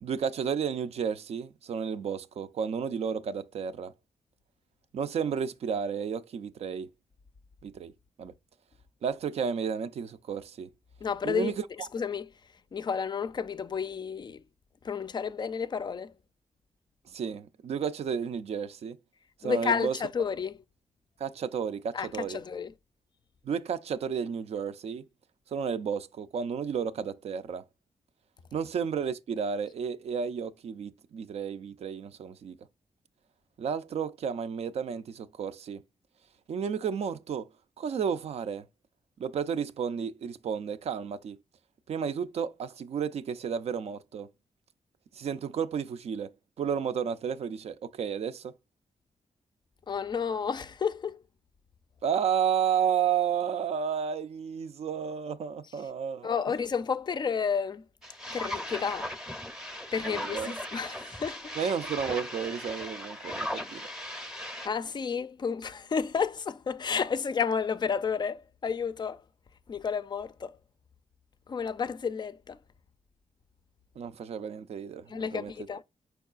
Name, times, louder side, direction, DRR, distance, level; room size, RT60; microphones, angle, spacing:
voice 1, 0.0-3.9 4.9-6.9 7.6-7.9 8.2-8.3 9.0-10.7 11.2-11.9 17.1-19.0 19.4-19.9 21.2-22.4 23.4-25.0 25.5-27.6 28.5-32.5 33.6-35.8 36.5-37.5 37.8-38.6 39.2-41.4 41.9-44.3 45.1-46.3 46.6-48.5 52.0-56.3 60.0-60.6 61.6-63.9 74.0-75.5, right 7 dB, 65° right, 0.4 m, -32 dB
voice 2, 11.0-12.3 12.7-14.4 14.8-16.1 19.4-20.6 21.9-22.7 49.9-51.2 56.2-57.8 58.3-59.1 59.9-61.5 64.6-69.2 69.7-70.6 71.5-72.6 75.1-75.8, left 6 dB, 40° left, 0.3 m, -31 dB
sound 1, 58.0-64.7, left 1 dB, 5° right, 0.6 m, -38 dB
4.6 x 4.6 x 2.4 m
cardioid pair, 90°, 11 cm